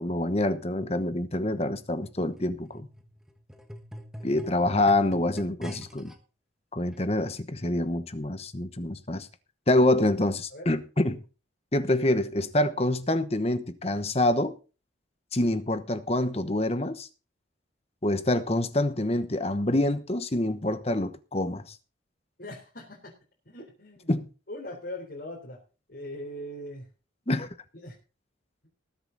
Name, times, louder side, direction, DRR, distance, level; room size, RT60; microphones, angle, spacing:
voice 1, 0.0-2.9 4.2-6.1 6.7-9.3 9.7-11.2 11.7-14.5 15.3-17.1 18.0-21.8 24.1-24.3 27.3-27.5, left 1 dB, 30° left, 1.1 m, -26 dB
sound 1, 1.7-6.2 6.9-7.0, equal, 5° right, 1.5 m, -44 dB
voice 2, 22.4-23.2 23.5-24.1 24.5-25.6 25.9-26.9 27.8-27.9, left 1 dB, 55° left, 3.8 m, -40 dB
20.0 x 8.0 x 4.0 m
head